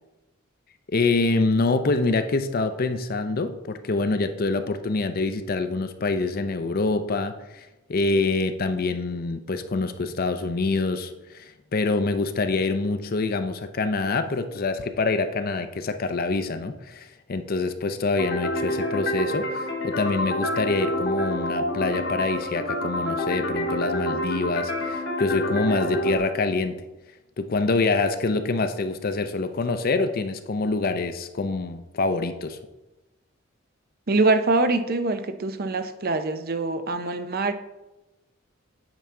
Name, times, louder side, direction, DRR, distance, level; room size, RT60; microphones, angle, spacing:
voice 1, 0.9-26.8 27.4-32.6, left 3 dB, 50° left, 9 dB, 0.6 m, -26 dB
sound 1, 18.2-26.2, equal, 65° left, 1.5 m, -27 dB
voice 2, 34.1-37.5, right 3 dB, 50° right, 9 dB, 0.6 m, -24 dB
8.9 x 5.7 x 3.7 m, 1.0 s
head